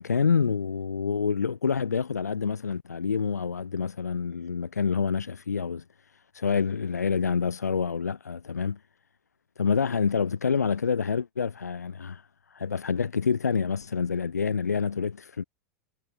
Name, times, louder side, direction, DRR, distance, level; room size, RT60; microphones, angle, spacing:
voice 1, 0.0-5.8 6.3-8.8 9.6-12.2 12.5-15.4, left 6 dB, 85° left, 7.7 m, -27 dB
hypercardioid pair, 95°, 9 cm